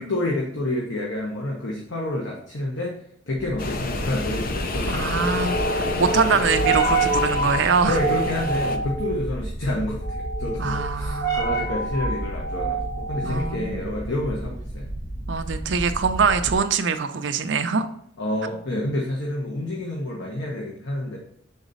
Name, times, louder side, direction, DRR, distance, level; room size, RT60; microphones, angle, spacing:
voice 1, 0.0-3.0 3.3-5.4 5.8-6.0 7.9-14.9 18.2-21.2, left 1 dB, 75° left, -2 dB, 1.1 m, -29 dB
sound 1, 3.4-16.7, right 2 dB, 20° left, 0.8 m, -28 dB
sound 2, 3.6-8.8, left 3 dB, 45° left, 0.6 m, -30 dB
voice 2, 4.9-8.0 10.6-11.5 13.2-13.9 15.3-17.9, right 5 dB, 65° right, 8 dB, 0.5 m, -24 dB
7.2 x 4.0 x 4.0 m, 0.68 s
head